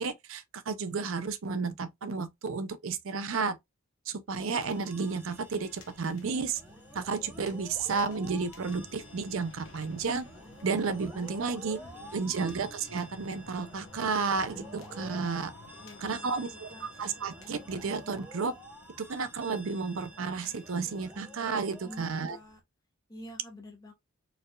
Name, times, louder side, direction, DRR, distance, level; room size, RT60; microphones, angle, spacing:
voice 1, 0.0-3.6 4.1-6.6 6.9-10.3 10.6-11.8 12.1-15.5 16.0-18.5 19.0-22.4, right 4 dB, 70° right, 0.5 m, -32 dB
sound 1, 4.4-22.2, equal, 10° right, 0.9 m, -50 dB
sound 2, 4.5-22.6, left 2 dB, 65° left, 1.2 m, -54 dB
voice 2, 11.6-12.5 15.7-16.9 21.8-22.6 23.1-23.9, left 1 dB, 20° left, 1.4 m, -49 dB
4.3 x 3.3 x 2.3 m
head